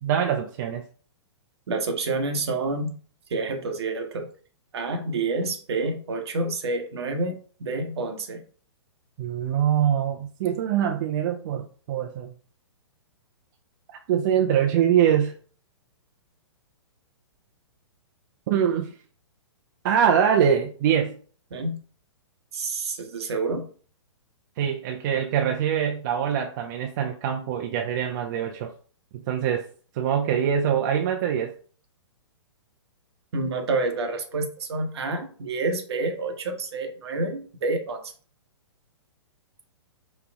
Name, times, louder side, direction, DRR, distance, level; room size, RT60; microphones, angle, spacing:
voice 1, 0.0-0.8 9.2-12.3 14.1-15.3 18.5-18.9 19.8-21.2 24.6-28.7 29.1-29.7 29.9-31.6, right 8 dB, 40° right, 3 dB, 0.5 m, -23 dB
voice 2, 1.7-3.0 3.3-4.3 4.7-8.4 21.5-21.8 22.5-23.7 33.3-38.1, right 3 dB, 60° right, 5 dB, 1.0 m, -28 dB
5.2 x 2.3 x 3.4 m, 0.42 s
figure-of-eight pair, 115°, 15 cm